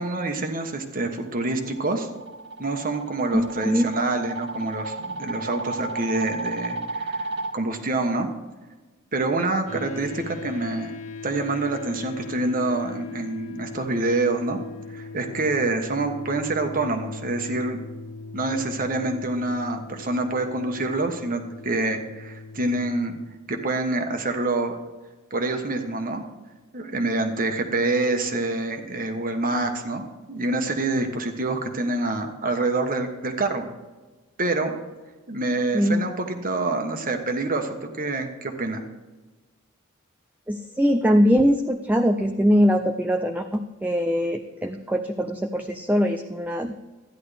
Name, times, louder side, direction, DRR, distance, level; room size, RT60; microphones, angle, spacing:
voice 1, 0.0-2.1 2.6-8.3 9.1-11.0 11.2-14.6 14.9-17.8 18.3-23.2 23.5-24.8 25.3-26.2 26.7-33.6 34.4-34.8 35.3-38.8, right 2 dB, 40° right, 5 dB, 1.2 m, -26 dB
sound 1, 1.5-7.5, right 2 dB, 55° right, 1.6 m, -33 dB
voice 2, 3.3-3.9 35.7-36.0 40.5-46.8, equal, 10° right, 5 dB, 0.4 m, -22 dB
sound 2, 9.7-23.2, left 3 dB, 75° left, 1.9 m, -39 dB
13.5 x 10.5 x 3.4 m, 1.2 s
head